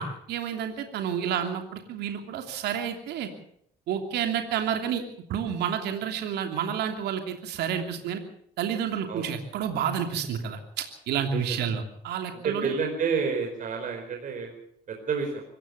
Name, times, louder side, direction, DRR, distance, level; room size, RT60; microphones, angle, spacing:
voice 1, 0.0-3.3 3.9-5.0 5.3-8.2 8.6-12.7, right 8 dB, 75° right, 5 dB, 3.0 m, -30 dB
voice 2, 11.3-11.6 12.4-14.5 14.9-15.4, right 5 dB, 50° right, 3 dB, 4.7 m, -29 dB
25.5 x 15.0 x 6.9 m, 0.69 s
cardioid pair, 110°, 17 cm